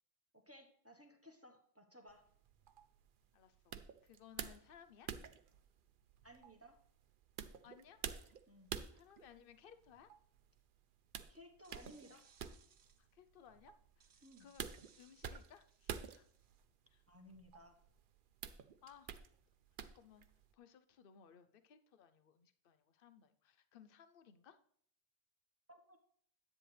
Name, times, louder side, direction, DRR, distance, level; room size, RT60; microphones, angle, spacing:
voice 1, 0.3-2.2 6.2-6.8 8.5-8.7 11.3-12.3 14.2-14.5 17.1-17.8 25.7-26.0, equal, 15° right, 3 dB, 1.3 m, -59 dB
sound 1, 2.1-20.5, right 7 dB, 60° right, 0.7 m, -51 dB
voice 2, 3.3-5.1 7.6-8.4 8.9-10.1 13.0-16.3 16.9-17.0 18.8-19.2 19.8-20.3 20.5-24.6, left 8 dB, 60° left, 11 dB, 0.9 m, -62 dB
sound 2, 11.3-13.1 14.0-16.6, right 6 dB, 85° right, 1.1 m, -69 dB
10.5 x 8.7 x 3.3 m, 0.62 s
omnidirectional pair, 1.1 m